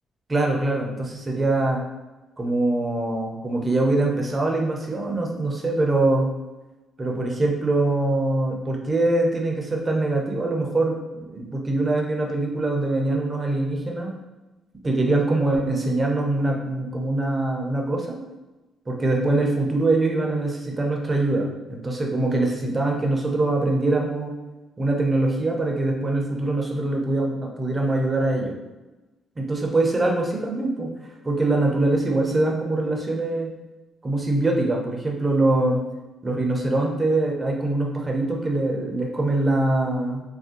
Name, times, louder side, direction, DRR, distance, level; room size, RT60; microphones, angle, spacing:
voice 1, 0.3-1.8 2.4-6.3 7.0-14.1 14.8-18.2 18.9-24.4 24.8-28.5 29.4-30.9 31.2-33.5 34.0-35.8 36.2-40.2, right 2 dB, 25° right, 0 dB, 0.6 m, -23 dB
2.5 x 2.1 x 3.6 m, 1.1 s
cardioid pair, 90°, 0 cm